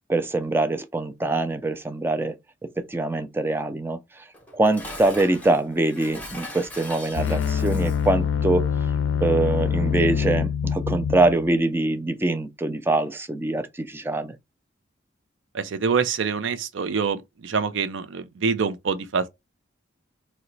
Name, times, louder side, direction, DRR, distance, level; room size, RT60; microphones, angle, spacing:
voice 1, 0.1-2.4 2.6-4.3 4.5-8.7 9.2-14.4, right 2 dB, 10° right, 0.3 m, -24 dB
Dishes pots and pans, 4.3-8.2, left 1 dB, 5° left, 0.8 m, -40 dB
sound 1, 7.2-11.5, left 7 dB, 75° left, 0.4 m, -25 dB
voice 2, 15.5-19.3, right 5 dB, 75° right, 0.5 m, -25 dB
2.9 x 2.1 x 3.9 m
head